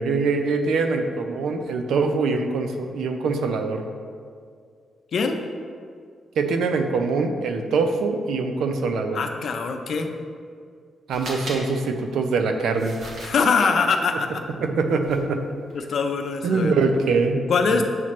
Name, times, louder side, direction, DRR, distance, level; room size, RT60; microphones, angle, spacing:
voice 1, 0.0-3.8 6.4-9.2 11.1-13.0 14.6-15.4 16.4-17.8, right 4 dB, 90° right, 5 dB, 0.6 m, -23 dB
voice 2, 9.1-10.1 13.2-14.3 15.7-16.7 17.5-17.8, left 5 dB, 55° left, 4 dB, 0.5 m, -22 dB
sound 1, 11.1-11.6 12.8-13.6 15.1-15.2 15.6-15.8, right 1 dB, 65° right, 1.4 m, -36 dB
7.5 x 3.1 x 5.8 m, 2.2 s
wide cardioid pair, 150°, 0 cm